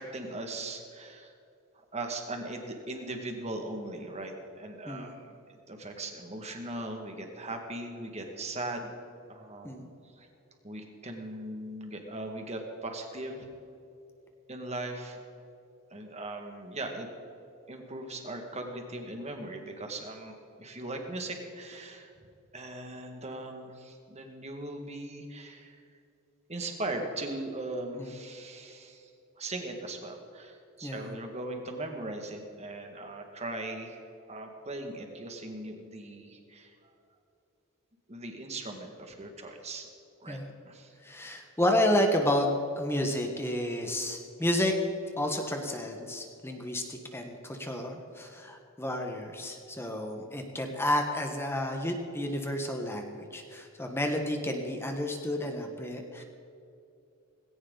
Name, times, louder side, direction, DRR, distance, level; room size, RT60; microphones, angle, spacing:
voice 1, 0.0-1.3 1.9-8.9 9.3-9.8 10.1-10.3 10.6-13.5 14.5-15.2 15.9-17.1 17.7-22.1 22.5-25.8 26.5-29.1 29.4-34.0 34.3-36.9 38.1-39.9 40.2-40.4 40.6-40.9 56.1-56.2, right 2 dB, 30° right, 3 dB, 2.1 m, -39 dB
voice 2, 30.8-31.1 40.3-40.5 41.0-42.5 42.8-44.7 45.2-56.2, left 1 dB, 10° left, 3 dB, 1.5 m, -31 dB
18.5 x 17.0 x 4.1 m, 2.6 s
head